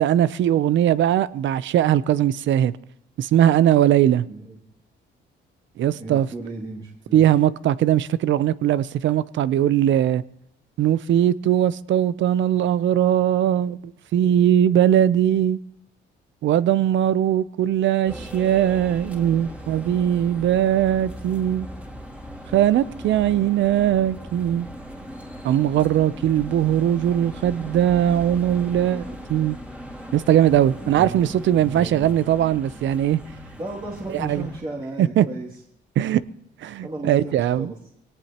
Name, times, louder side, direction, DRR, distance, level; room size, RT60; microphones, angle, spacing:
voice 1, 0.0-2.7 3.2-4.2 5.8-6.3 7.1-10.2 10.8-13.8 14.1-15.6 16.4-21.7 22.5-24.7 25.4-29.6 30.1-33.2 34.1-34.5 35.0-35.2 36.0-36.2 36.6-37.7, right 11 dB, 70° right, 0.6 m, -20 dB
voice 2, 5.9-7.2 30.8-31.3 31.7-32.2 33.6-35.5 36.8-37.8, right 2 dB, 25° right, 2.6 m, -35 dB
sound 1, 18.1-34.6, equal, 5° right, 2.8 m, -38 dB
23.0 x 18.0 x 2.9 m
cardioid pair, 90°, 20 cm